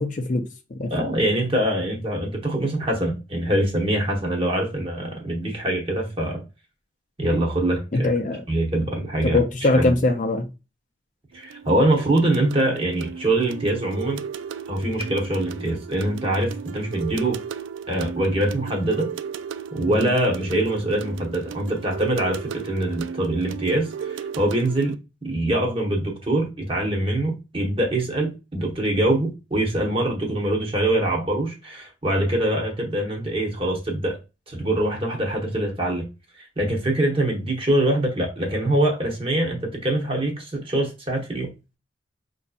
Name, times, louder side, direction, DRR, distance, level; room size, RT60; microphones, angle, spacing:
voice 1, 0.0-0.9 7.9-8.5 9.2-10.5 19.8-20.1, left 2 dB, 40° left, 0.4 m, -22 dB
voice 2, 0.9-6.4 7.2-8.1 8.5-9.4 9.7-9.9 11.3-14.2 14.7-17.4 17.9-19.1 19.7-25.0 25.2-34.2 34.5-36.1 36.4-41.5, right 1 dB, 30° right, 1.0 m, -24 dB
sound 1, 11.3-25.0, right 7 dB, 80° right, 0.3 m, -35 dB
5.2 x 2.7 x 2.3 m
head